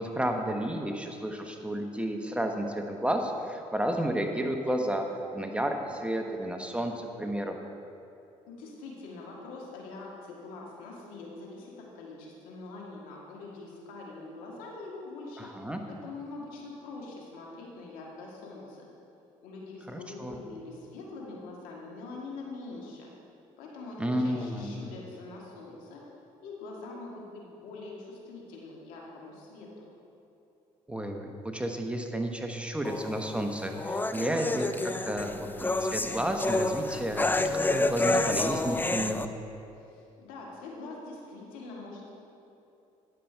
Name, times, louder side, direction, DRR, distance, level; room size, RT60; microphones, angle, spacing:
voice 1, 0.0-5.1 5.3-7.6 15.4-15.8 19.9-20.4 24.0-24.8 30.9-39.3, right 1 dB, 10° right, 3 dB, 0.9 m, -32 dB
voice 2, 8.5-15.5 15.9-18.9 19.4-23.1 23.6-26.0 26.4-29.9 39.8-42.1, left 3 dB, 85° left, -2 dB, 1.7 m, -44 dB
sound 1, 32.8-39.3, left 2 dB, 15° left, 0.5 m, -29 dB
10.0 x 6.8 x 4.5 m, 2.8 s
supercardioid pair, 70°, 14 cm